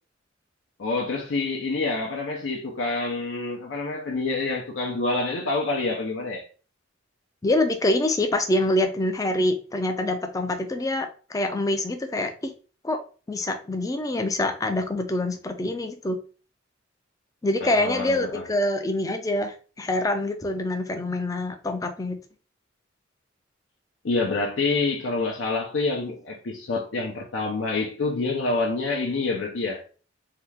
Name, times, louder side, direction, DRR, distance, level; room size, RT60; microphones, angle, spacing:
voice 1, 0.8-6.4 17.6-18.5 24.0-29.8, left 3 dB, 70° left, 0.5 m, -27 dB
voice 2, 7.4-12.5 12.8-13.0 13.3-16.2 17.4-22.2, left 1 dB, 20° left, 0.4 m, -25 dB
2.8 x 2.3 x 3.3 m
head